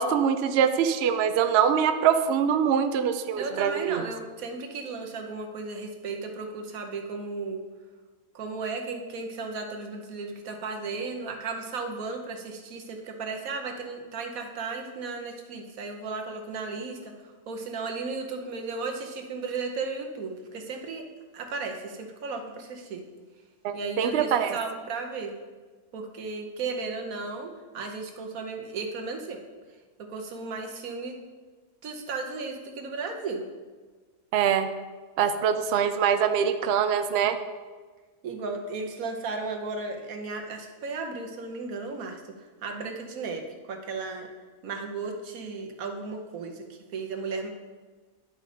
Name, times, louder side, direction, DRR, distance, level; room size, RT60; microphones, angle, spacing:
voice 1, 0.0-4.0 23.6-24.6 34.3-34.7 35.2-37.4, right 8 dB, 65° right, 8 dB, 0.7 m, -24 dB
voice 2, 3.4-7.6 8.3-17.1 17.5-21.0 21.3-23.0 23.7-25.3 25.9-29.4 30.1-31.2 31.8-33.5 38.2-42.2 42.6-44.3 44.6-47.5, right 4 dB, 80° right, 3 dB, 1.3 m, -35 dB
10.5 x 4.9 x 3.9 m, 1.4 s
omnidirectional pair, 1.5 m